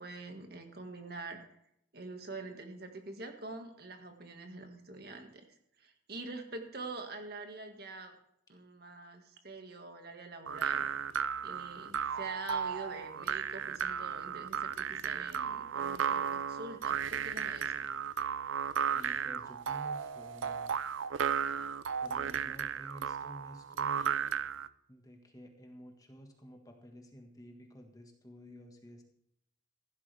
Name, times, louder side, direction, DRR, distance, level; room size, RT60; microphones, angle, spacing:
voice 1, 0.0-1.4 1.9-5.5 5.8-8.1 8.5-10.9 11.4-17.9, right 3 dB, 55° right, 5 dB, 1.9 m, -45 dB
sound 1, 10.5-24.7, right 7 dB, 85° right, 0.5 m, -34 dB
voice 2, 18.9-20.7 22.0-24.3 24.9-29.0, equal, 20° left, 3 dB, 1.7 m, -51 dB
15.5 x 12.0 x 3.5 m, 0.76 s
head